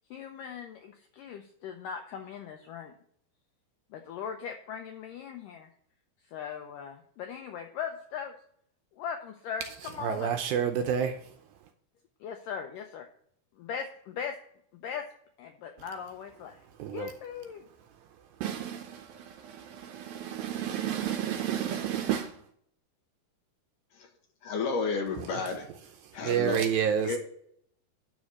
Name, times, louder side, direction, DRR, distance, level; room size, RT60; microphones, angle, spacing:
voice 1, 0.1-2.9 3.9-5.7 6.3-8.3 8.9-10.4 12.2-13.1 13.6-14.4 14.7-15.1 15.4-16.6 16.9-17.6, left 7 dB, 85° left, 1.9 m, -39 dB
voice 2, 10.0-11.3 16.8-17.1 18.4-22.4 25.2-25.6 26.0-27.2, right 9 dB, 80° right, 2.2 m, -30 dB
voice 3, 24.4-25.7 26.1-26.7 27.0-27.2, left 4 dB, 65° left, 2.2 m, -31 dB
11.5 x 4.2 x 6.1 m
omnidirectional pair, 4.7 m